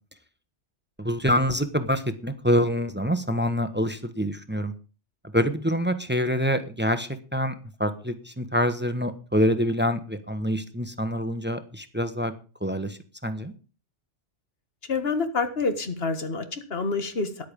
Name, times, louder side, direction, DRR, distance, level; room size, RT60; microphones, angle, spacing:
voice 1, 1.0-4.7 5.3-7.5 7.8-12.3 12.6-13.5, equal, 10° right, 10 dB, 1.1 m, -26 dB
voice 2, 14.9-17.3, left 4 dB, 55° left, 8 dB, 2.0 m, -27 dB
13.5 x 10.5 x 5.3 m, 0.36 s
omnidirectional pair, 1.2 m